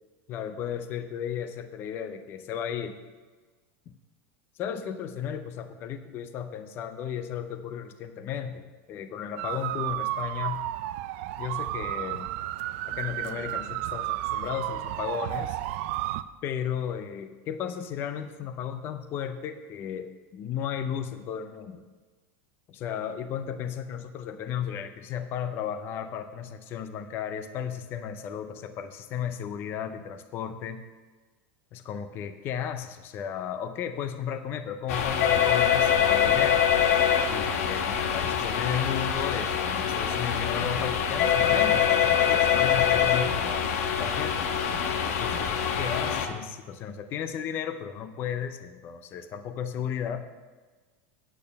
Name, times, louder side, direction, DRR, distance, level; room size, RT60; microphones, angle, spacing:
voice 1, 0.3-3.0 4.6-10.6 11.4-12.3 12.9-15.6 16.4-21.8 22.7-30.8 31.7-36.6 37.3-43.7 44.0-44.5 45.1-50.3, left 8 dB, 30° left, 9 dB, 0.5 m, -34 dB
sound 1, 9.4-16.2, right 15 dB, 55° right, 0.4 m, -32 dB
sound 2, 34.9-46.3, left 8 dB, 75° left, 1.1 m, -24 dB
9.0 x 8.7 x 5.3 m, 1.4 s
supercardioid pair, 165°, 8 cm